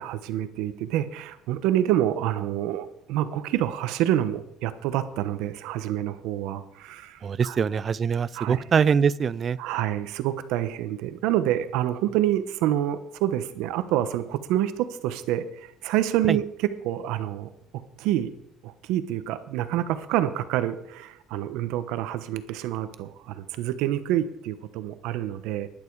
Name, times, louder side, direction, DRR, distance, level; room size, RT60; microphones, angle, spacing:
voice 1, 0.0-7.6 8.3-8.6 9.6-17.5 18.0-18.3 18.6-25.7, right 12 dB, 80° right, 11 dB, 1.1 m, -27 dB
voice 2, 7.2-9.6 16.3-16.4, right 6 dB, 30° right, 20 dB, 0.4 m, -23 dB
12.0 x 11.0 x 4.8 m, 0.77 s
cardioid pair, 145°, 0 cm